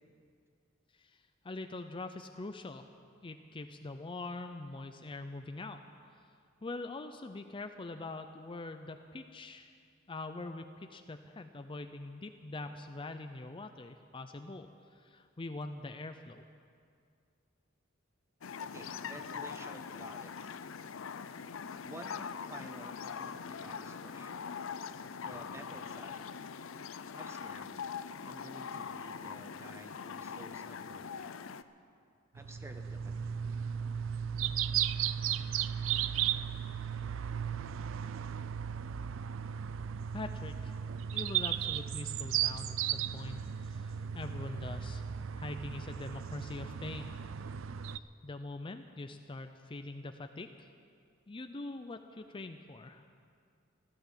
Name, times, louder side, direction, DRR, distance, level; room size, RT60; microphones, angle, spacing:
voice 1, 0.9-2.9 3.2-5.8 6.1-6.2 6.6-9.7 10.1-16.4 40.1-40.7 41.1-45.0 45.4-47.1 48.2-50.7 51.3-53.0, left 2 dB, 25° left, 7 dB, 0.5 m, -43 dB
sound 1, 18.4-31.6, left 6 dB, 90° left, 0.5 m, -42 dB
voice 2, 18.6-20.6 21.8-22.2 22.5-24.4 25.2-26.3 27.1-27.7 28.2-31.5 32.3-33.5, right 1 dB, 15° right, 6 dB, 1.1 m, -51 dB
sound 2, 32.4-48.0, right 9 dB, 75° right, 0.4 m, -35 dB
15.0 x 12.5 x 7.4 m, 2.3 s
head